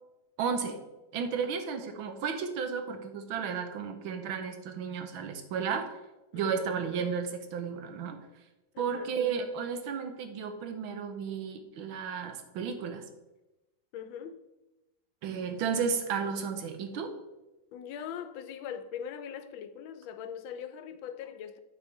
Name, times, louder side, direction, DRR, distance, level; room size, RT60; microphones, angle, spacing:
voice 1, 0.4-0.8 1.1-5.9 6.3-8.2 8.8-13.0 15.2-17.1, right 6 dB, 85° right, 1.7 m, -33 dB
voice 2, 6.3-6.7 8.7-9.1 13.9-14.4 17.7-21.6, left 8 dB, 80° left, 1.4 m, -41 dB
8.8 x 4.9 x 4.6 m
omnidirectional pair, 2.1 m